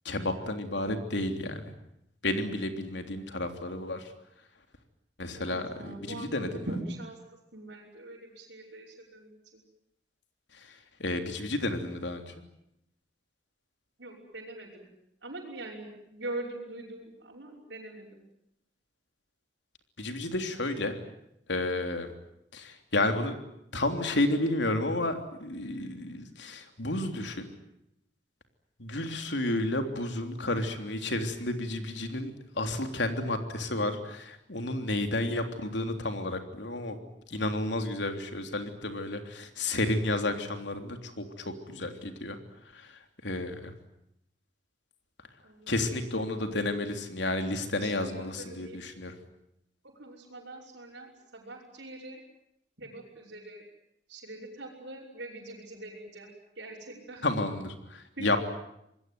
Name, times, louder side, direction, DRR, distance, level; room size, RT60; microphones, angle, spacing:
voice 1, 0.0-1.7 2.2-4.0 5.2-6.7 11.0-12.2 20.0-20.9 21.5-22.1 22.5-23.4 23.7-27.5 28.8-37.0 37.3-42.4 42.7-42.9 43.2-43.7 45.7-49.1 57.2-58.4, left 2 dB, 80° left, 6 dB, 3.4 m, -31 dB
voice 2, 5.4-9.6 14.0-14.9 15.2-18.2 45.4-45.7 47.6-48.8 49.8-52.2 52.8-53.7 54.1-56.3 56.6-57.3 58.2-58.4, right 2 dB, 80° right, -3 dB, 5.9 m, -43 dB
26.5 x 21.0 x 9.4 m, 0.80 s
head